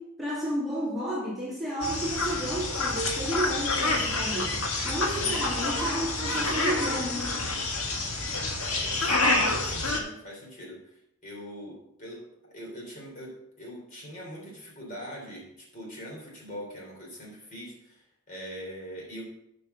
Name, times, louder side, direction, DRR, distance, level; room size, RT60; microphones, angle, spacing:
voice 1, 0.0-4.6 4.8-7.5, right 1 dB, ahead, -8 dB, 2.5 m, -32 dB
sound 1, 1.8-10.0, left 2 dB, 70° left, 1.7 m, -28 dB
voice 2, 5.1-5.5 8.7-19.2, equal, 35° left, -3 dB, 3.3 m, -43 dB
7.1 x 6.0 x 6.6 m, 0.80 s
head